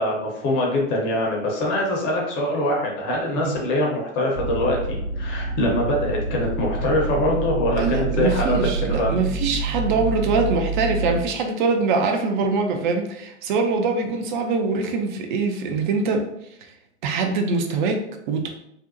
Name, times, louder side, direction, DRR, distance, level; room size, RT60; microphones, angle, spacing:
voice 1, 0.0-8.6 8.9-9.1, left 1 dB, 30° left, -1 dB, 0.7 m, -23 dB
sound 1, 4.3-11.2, right 3 dB, 60° right, 0.8 m, -27 dB
voice 2, 7.8-16.3 17.0-18.6, right 4 dB, 45° right, 4 dB, 0.5 m, -23 dB
2.5 x 2.1 x 2.6 m, 0.78 s
figure-of-eight pair, 100°, 36 cm